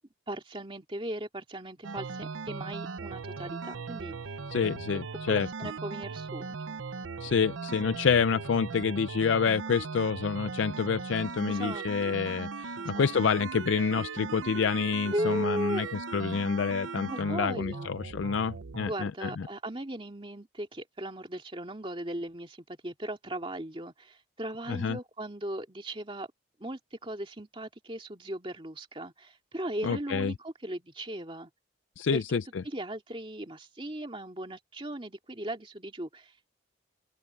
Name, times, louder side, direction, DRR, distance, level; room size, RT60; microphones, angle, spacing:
voice 1, 0.3-4.3 5.3-6.6 7.0-7.2 11.5-12.3 12.8-13.1 15.1-15.8 17.0-17.9 18.8-26.3 26.6-31.5 32.1-32.2 32.6-36.3, right 1 dB, 25° right, 2.3 m, -37 dB
sound 1, 1.8-18.9, right 4 dB, 85° right, 0.7 m, -38 dB
voice 2, 4.5-5.5 7.2-19.5 24.7-25.0 29.8-30.3 32.0-32.6, left 6 dB, 80° left, 0.4 m, -28 dB
open air
head